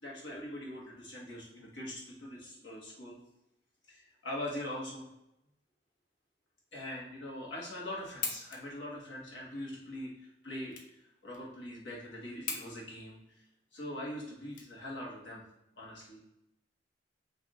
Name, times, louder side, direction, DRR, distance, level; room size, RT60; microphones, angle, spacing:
voice 1, 0.0-3.2 3.9-5.1 6.7-13.4 13.7-15.4 15.8-16.2, left 1 dB, 85° left, -4 dB, 1.3 m, -42 dB
sound 1, 8.2-15.3, left 5 dB, 45° left, 0.6 m, -44 dB
3.3 x 2.6 x 3.9 m, 0.85 s
head